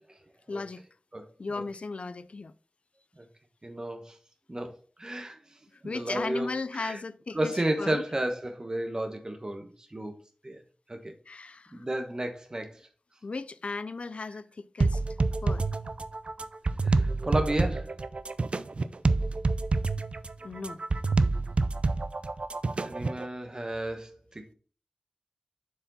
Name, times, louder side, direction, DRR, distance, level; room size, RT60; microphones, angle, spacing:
voice 1, 0.5-0.8 1.4-2.5 5.8-8.0 11.3-11.8 13.2-15.0 15.4-15.6 20.4-20.8, left 3 dB, 70° left, 0.4 m, -36 dB
voice 2, 3.6-4.1 4.5-4.7 5.0-5.4 5.8-6.5 6.8-7.0 7.3-10.1 10.4-10.6 10.9-11.1 11.7-12.8 16.8-17.9 22.8-24.5, right 1 dB, 35° right, 1.2 m, -32 dB
sound 1, 14.8-23.3, right 3 dB, 65° right, 0.4 m, -27 dB
7.0 x 4.7 x 4.1 m
wide cardioid pair, 70°, 2 cm